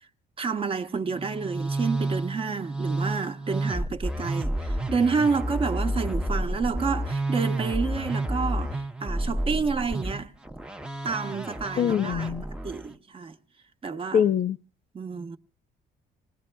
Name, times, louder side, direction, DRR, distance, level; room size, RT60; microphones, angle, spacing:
voice 1, 0.4-10.3 11.0-12.3 12.6-13.3 13.8-14.2 14.9-15.4, right 5 dB, 30° right, 0.9 m, -29 dB
Musical instrument, 1.1-12.9, right 1 dB, 5° right, 0.7 m, -30 dB
voice 2, 11.8-12.5 14.1-14.6, left 8 dB, 45° left, 0.6 m, -23 dB
27.5 x 19.5 x 2.3 m
cardioid pair, 110°, 17 cm